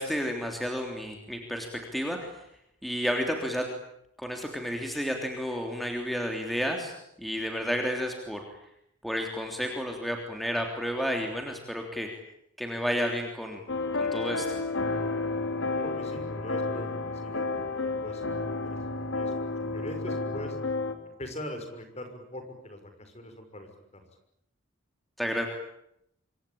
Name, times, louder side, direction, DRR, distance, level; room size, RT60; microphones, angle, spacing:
voice 1, 0.0-1.7 1.9-2.4 2.8-3.6 4.2-6.9 7.2-8.4 9.0-12.1 12.6-13.6 13.9-14.6 25.2-25.5, equal, ahead, 2 dB, 3.3 m, -31 dB
sound 1, 13.7-20.9, left 3 dB, 70° left, 3.2 m, -31 dB
voice 2, 15.7-18.8 19.1-19.3 19.7-20.6 21.1-24.0, left 1 dB, 30° left, 7 dB, 6.1 m, -42 dB
27.0 x 25.5 x 8.7 m, 0.76 s
head